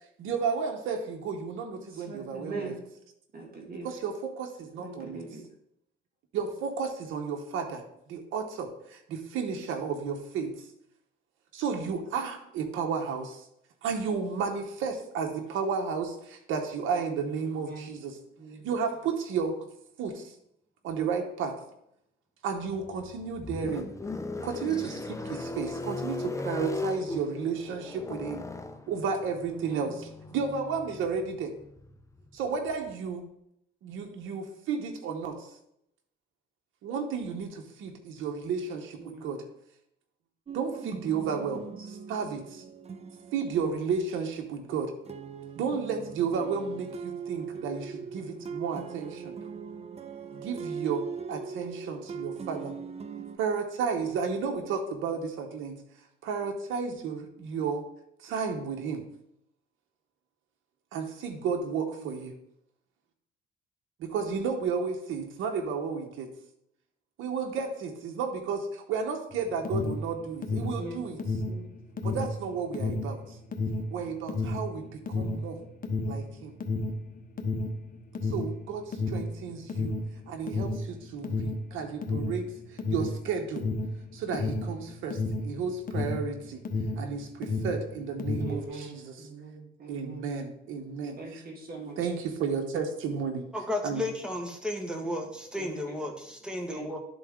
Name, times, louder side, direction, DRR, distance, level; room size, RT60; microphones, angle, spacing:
voice 1, 0.2-2.7 3.8-5.2 6.3-7.8 8.1-10.7 11.5-13.5 13.8-18.2 18.6-19.6 20.0-20.3 20.8-21.6 22.4-23.9 24.4-28.4 28.9-31.5 32.3-33.3 33.8-35.5 36.8-39.4 40.5-42.6 43.3-44.9 45.6-49.4 50.3-52.7 53.4-55.8 56.2-57.8 58.2-59.0 60.9-62.3 64.0-66.3 67.2-71.4 72.0-73.4 73.9-75.6 76.0-76.5 78.2-79.9 80.3-83.6 84.1-86.6 87.0-89.3 89.9-91.4 92.0-93.5 93.8-94.1, right 5 dB, 85° right, 3 dB, 0.9 m, -32 dB
voice 2, 2.1-2.8 3.3-3.9 4.8-5.4 17.6-17.9 18.4-18.6 29.6-29.8 39.0-39.3 62.0-62.2 70.8-71.0 71.4-71.7 88.4-90.3 91.2-92.0 95.6-95.7 96.7-96.9, right 3 dB, 50° right, 0 dB, 1.6 m, -41 dB
sound 1, 22.7-32.9, left 3 dB, 15° left, 0.6 m, -38 dB
sound 2, 40.5-44.5 45.1-53.4, right 6 dB, 30° right, 0.6 m, -40 dB
Alarm, 69.3-87.1 87.4-88.6, left 2 dB, 45° left, 1.0 m, -31 dB
voice 3, 93.5-97.0, left 1 dB, 5° right, 2 dB, 1.5 m, -33 dB
11.5 x 3.9 x 3.6 m, 0.76 s
cardioid pair, 90°, 20 cm